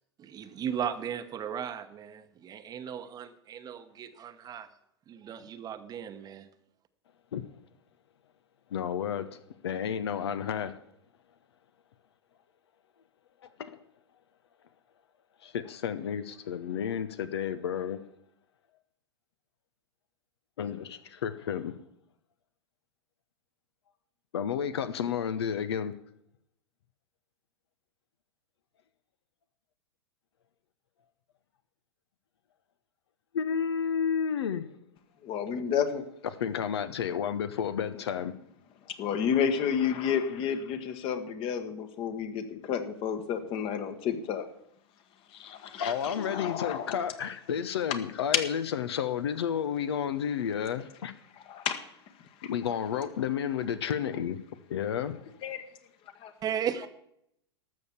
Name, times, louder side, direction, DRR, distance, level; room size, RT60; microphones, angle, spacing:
voice 1, 0.2-4.7 5.1-6.5 56.4-56.9, right 8 dB, 25° right, 1.0 m, -36 dB
voice 2, 8.7-9.3 9.6-10.7 13.6-13.8 15.4-18.0 20.6-21.7 24.3-25.9 33.3-34.7 36.4-38.3 45.8-51.1 52.4-54.4 54.7-55.2, left 8 dB, 65° left, 0.9 m, -31 dB
voice 3, 35.2-36.1 39.0-44.4 45.3-47.0 51.5-51.8 52.4-52.5 55.4-55.6 56.2-56.3, left 7 dB, 40° left, 1.5 m, -31 dB
12.5 x 6.8 x 7.2 m
figure-of-eight pair, 95°, 14 cm